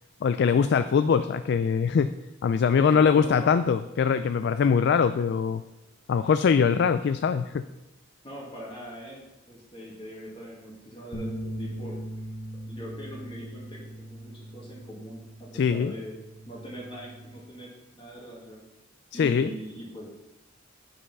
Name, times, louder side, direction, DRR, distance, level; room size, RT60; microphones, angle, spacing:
voice 1, 0.2-2.1 2.4-5.6 6.1-7.6 15.5-15.9 19.1-19.5, left 6 dB, 60° left, 11 dB, 0.3 m, -22 dB
voice 2, 2.7-3.6 8.2-9.2 9.5-12.0 12.7-16.1 16.5-18.6 19.1-20.1, equal, 25° left, -4 dB, 2.0 m, -41 dB
sound 1, 11.1-17.4, right 1 dB, 85° left, 1.3 m, -40 dB
8.3 x 5.6 x 5.4 m, 0.98 s
head